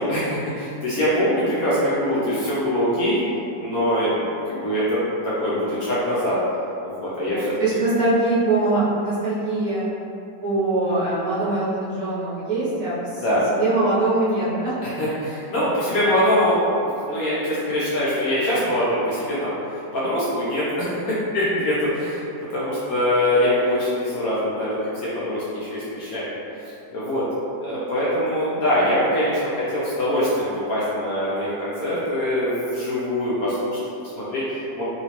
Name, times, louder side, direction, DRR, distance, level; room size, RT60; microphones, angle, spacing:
voice 1, 0.0-3.2 3.6-6.4 6.8-7.5 13.2-13.4 14.8-19.5 19.9-22.2 22.5-26.3 26.9-27.2 27.6-34.8, equal, 65° left, -9 dB, 1.0 m, -23 dB
voice 2, 7.3-9.9 10.4-13.2 13.6-14.7, right 2 dB, 60° right, -10 dB, 1.0 m, -22 dB
3.1 x 2.9 x 2.9 m, 2.7 s
omnidirectional pair, 2.0 m